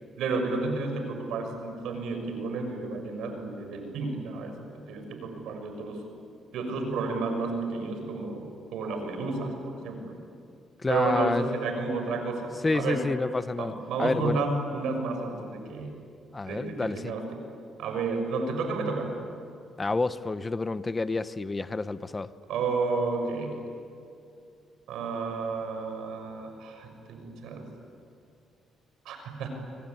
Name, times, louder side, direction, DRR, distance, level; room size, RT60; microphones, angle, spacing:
voice 1, 0.2-4.6 4.9-6.0 6.5-8.4 8.7-10.1 10.9-13.0 13.6-16.0 16.5-17.3 17.8-19.1 22.5-23.6 24.9-27.7 29.0-29.5, right 3 dB, 85° right, 5 dB, 6.3 m, -31 dB
voice 2, 10.8-11.5 12.6-13.7 14.0-14.4 16.3-17.1 19.8-22.3, left 3 dB, 25° left, 13 dB, 0.9 m, -29 dB
25.5 x 24.5 x 9.5 m, 2.4 s
cardioid pair, 90°, 0 cm